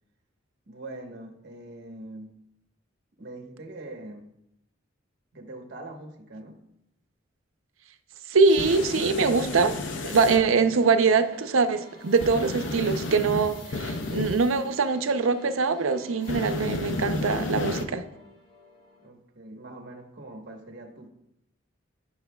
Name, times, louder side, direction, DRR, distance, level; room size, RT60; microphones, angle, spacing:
voice 1, 0.7-2.4 3.2-4.3 5.3-6.6 19.0-21.1, right 2 dB, 55° right, 1.1 m, -42 dB
voice 2, 8.3-9.8 10.0-18.0, right 4 dB, 85° right, 0.6 m, -23 dB
sound 1, 8.5-10.4 12.2-14.5 16.3-17.8, left 2 dB, 60° left, 0.6 m, -32 dB
sound 2, 8.9-19.1, left 1 dB, 25° left, 1.5 m, -50 dB
11.5 x 6.1 x 2.3 m
head